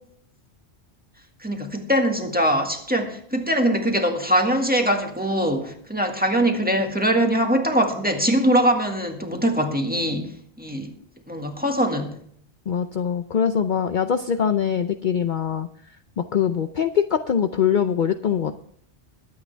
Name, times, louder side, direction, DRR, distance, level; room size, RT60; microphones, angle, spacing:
voice 1, 1.4-10.3 10.6-10.9 11.3-12.2, equal, 10° right, 3 dB, 1.7 m, -22 dB
voice 2, 12.7-15.7 16.2-18.6, left 8 dB, 50° left, 9 dB, 0.7 m, -23 dB
22.0 x 8.8 x 3.4 m, 0.65 s
omnidirectional pair, 1.2 m